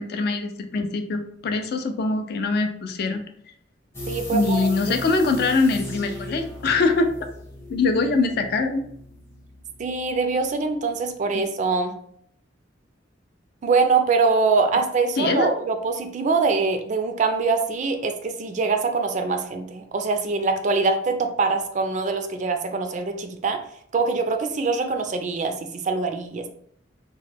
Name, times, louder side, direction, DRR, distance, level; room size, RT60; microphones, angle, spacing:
voice 1, 0.0-3.2 4.3-7.3 7.7-8.8 15.2-15.5, left 3 dB, 55° left, 7 dB, 0.4 m, -23 dB
sound 1, 3.9-10.7 11.0-11.2, left 1 dB, 15° left, 0.6 m, -37 dB
voice 2, 4.1-4.6 9.8-11.9 13.6-23.6 23.9-26.5, right 4 dB, 40° right, 7 dB, 0.3 m, -23 dB
3.0 x 2.1 x 3.3 m, 0.66 s
head